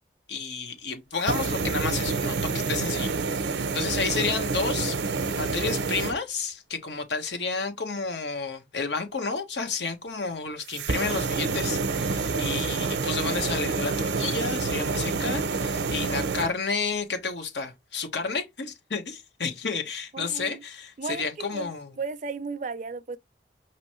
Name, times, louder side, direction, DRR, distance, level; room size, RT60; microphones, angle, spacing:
voice 1, 0.3-3.5 3.7-5.0 5.3-22.0, left 4 dB, 90° left, 1.2 m, -31 dB
sound 1, 1.1-6.1 10.7-16.5, right 4 dB, 85° right, 0.6 m, -28 dB
voice 2, 20.1-20.6 21.0-21.3 21.5-21.7 22.0-23.2, right 4 dB, 45° right, 0.4 m, -34 dB
5.2 x 3.0 x 3.0 m
head